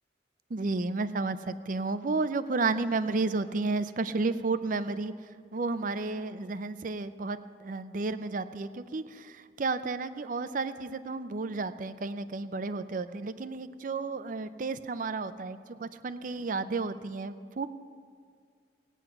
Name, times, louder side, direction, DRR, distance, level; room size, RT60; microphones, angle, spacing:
voice 1, 0.5-5.1 5.5-17.7, right 3 dB, 45° right, 12 dB, 0.5 m, -32 dB
17.0 x 9.1 x 5.9 m, 2.1 s
head